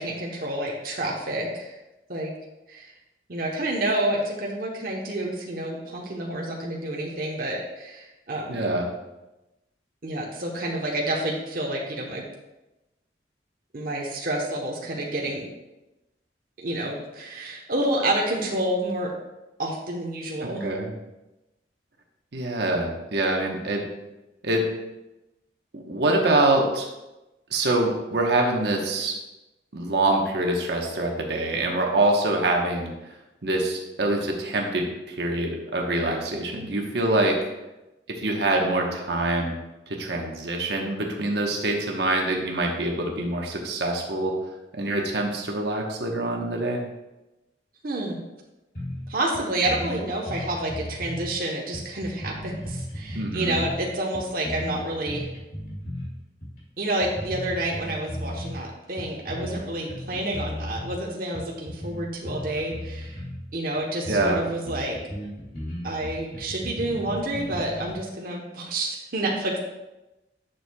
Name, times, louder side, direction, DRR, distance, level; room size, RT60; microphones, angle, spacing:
voice 1, 0.0-1.8 2.1-2.3 2.7-2.9 3.3-8.6 10.0-12.3 13.7-15.5 16.6-19.1 19.6-20.7 47.8-48.2 49.1-55.3 56.8-63.2 63.5-65.0 65.8-69.6, right 1 dB, 55° right, -2 dB, 0.9 m, -29 dB
voice 2, 8.5-8.8 20.4-20.9 22.3-23.8 24.4-24.6 25.7-26.9 27.5-29.2 29.7-32.9 33.4-37.4 38.1-39.5 39.9-44.4 44.7-46.8 53.1-53.6 64.1-64.4, right 2 dB, 70° right, 1 dB, 1.0 m, -25 dB
sound 1, 48.7-49.1 49.3-49.4 49.6-51.3 51.7-53.8 54.1-56.1 56.4-56.6 57.0-58.6 59.0-59.6 59.9-60.9 61.3-63.4 63.8-63.9 64.0-64.4 64.6-67.9, equal, 55° left, 2.5 m, -35 dB
9.9 x 6.3 x 2.3 m, 1.0 s
head